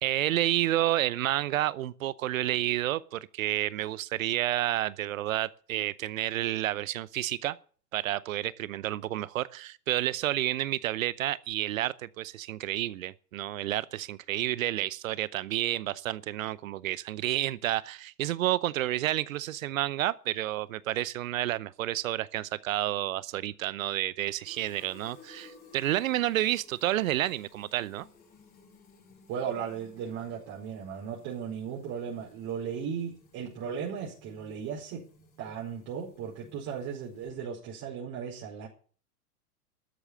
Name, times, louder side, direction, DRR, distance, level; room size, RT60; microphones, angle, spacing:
voice 1, 0.0-7.6 7.9-28.1, right 14 dB, 60° right, 0.8 m, -30 dB
Fill (with liquid), 24.4-37.5, left 3 dB, 20° left, 4.6 m, -57 dB
voice 2, 29.3-35.1 35.4-38.7, right 7 dB, 40° right, 4.9 m, -36 dB
13.0 x 8.0 x 8.6 m
hypercardioid pair, 110°, 46 cm